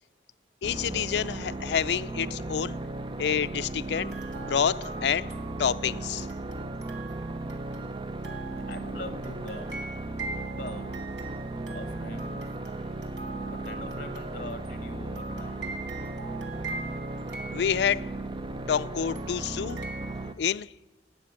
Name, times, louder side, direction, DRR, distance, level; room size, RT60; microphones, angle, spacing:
voice 1, 0.6-2.8 3.2-4.2 4.5-5.3 5.6-6.3 17.5-18.1 18.7-19.8 20.4-20.7, left 8 dB, 75° left, 0.4 m, -28 dB
sound 1, 0.6-20.3, right 2 dB, 25° right, 0.6 m, -36 dB
sound 2, 3.9-18.3 19.2-20.3, right 3 dB, 80° right, 2.1 m, -43 dB
voice 2, 8.7-9.9 10.5-11.1 11.7-12.5 13.5-15.6, left 2 dB, 45° left, 1.1 m, -42 dB
16.0 x 6.3 x 9.9 m
head